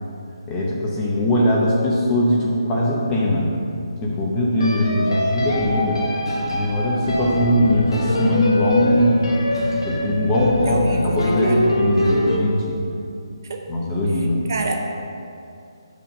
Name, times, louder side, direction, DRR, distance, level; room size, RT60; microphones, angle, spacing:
voice 1, 0.5-3.5 4.0-6.0 6.5-9.2 9.8-12.7 13.7-14.4, left 1 dB, 10° left, -4 dB, 0.7 m, -20 dB
sound 1, 2.3-2.5 4.6-12.4, left 1 dB, 70° left, 1.4 m, -23 dB
voice 2, 10.6-11.7 13.4-13.6 14.5-14.8, right 2 dB, 40° right, 2 dB, 0.8 m, -27 dB
7.1 x 5.2 x 6.4 m, 2.5 s
hypercardioid pair, 175°, 3 cm